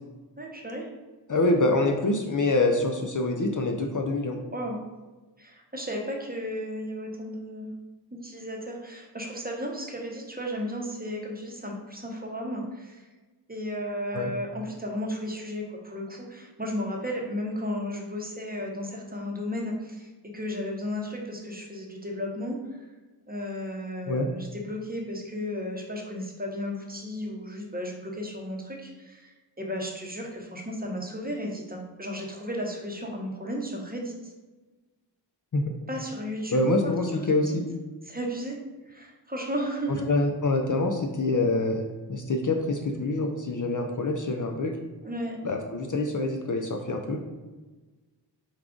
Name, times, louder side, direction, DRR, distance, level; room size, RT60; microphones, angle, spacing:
voice 1, 0.4-0.9 4.5-4.8 5.4-7.7 8.1-13.0 13.5-22.9 23.3-29.3 29.6-34.3 35.9-36.9 38.0-38.6 38.9-40.0 45.0-45.4, equal, 20° right, 0 dB, 0.8 m, -34 dB
voice 2, 1.3-4.4 14.1-14.3 24.1-24.3 35.5-35.6 36.5-37.6 40.1-44.7 45.4-47.2, left 2 dB, 45° left, 3 dB, 0.5 m, -26 dB
4.8 x 2.3 x 3.7 m, 1.2 s
wide cardioid pair, 45°, 44 cm